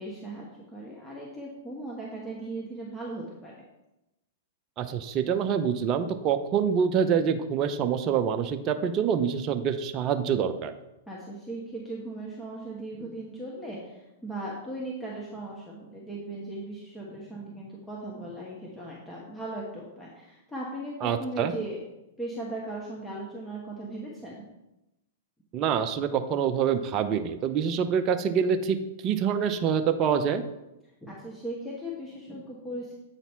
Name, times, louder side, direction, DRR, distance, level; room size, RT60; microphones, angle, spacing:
voice 1, 0.0-3.5 11.1-21.8 22.2-24.4 31.0-32.9, right 1 dB, 10° left, -4 dB, 1.3 m, -38 dB
voice 2, 4.8-10.7 21.0-21.5 25.5-28.8 29.0-30.4, right 7 dB, 35° right, 7 dB, 0.6 m, -26 dB
8.1 x 4.1 x 4.5 m, 0.94 s
hypercardioid pair, 115°, 0 cm